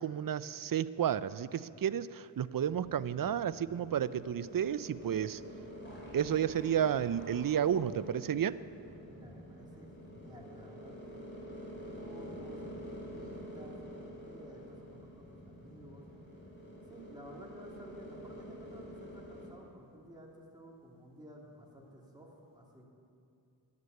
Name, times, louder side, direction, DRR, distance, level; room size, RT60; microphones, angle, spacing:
voice 1, 0.0-5.4 6.1-8.6, right 9 dB, 50° right, 17 dB, 0.5 m, -32 dB
sound 1, 2.6-19.5, equal, 25° left, 4.1 m, -48 dB
voice 2, 9.0-11.2 12.0-16.0 16.9-22.9, equal, 10° right, -3 dB, 2.8 m, -53 dB
10.5 x 9.6 x 8.1 m, 2.5 s
cardioid pair, 45°, 45 cm